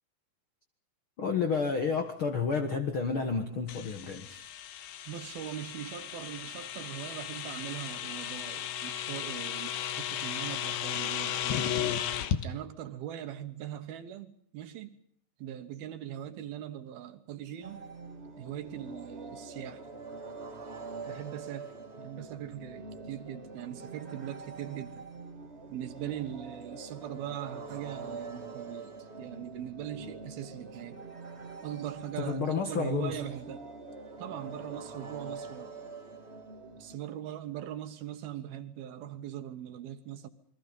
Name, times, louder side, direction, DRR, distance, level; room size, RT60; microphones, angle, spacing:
voice 1, 1.2-4.5 32.2-33.2, left 5 dB, 55° left, 1.5 m, -30 dB
sound 1, 3.7-12.4, left 10 dB, 75° left, 3.5 m, -35 dB
voice 2, 5.1-11.6 12.4-15.0 15.4-17.8 18.4-19.9 21.1-21.7 22.0-25.1 25.7-31.0 31.6-33.7 34.2-35.7 36.7-40.3, right 11 dB, 70° right, 2.8 m, -41 dB
sound 2, 17.6-37.0, right 3 dB, 40° right, 0.9 m, -44 dB
28.5 x 22.5 x 5.4 m
omnidirectional pair, 5.0 m